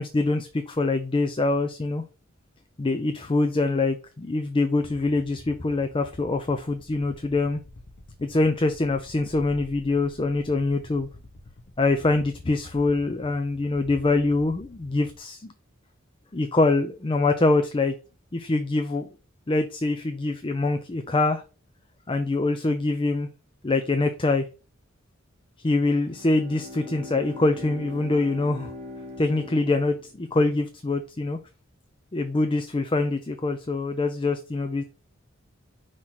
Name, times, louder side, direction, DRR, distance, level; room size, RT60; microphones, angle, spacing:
voice 1, 0.0-2.0 2.8-7.6 8.2-11.1 11.8-15.5 16.3-17.9 18.3-19.1 19.5-21.4 22.1-23.3 23.6-24.5 25.6-28.7 29.2-31.4 32.1-34.8, left 2 dB, 25° left, 0.5 m, -24 dB
sound 1, 4.8-15.2, left 2 dB, 50° left, 0.8 m, -48 dB
Bowed string instrument, 26.0-30.6, left 2 dB, 35° right, 1.6 m, -41 dB
5.7 x 3.2 x 5.7 m
head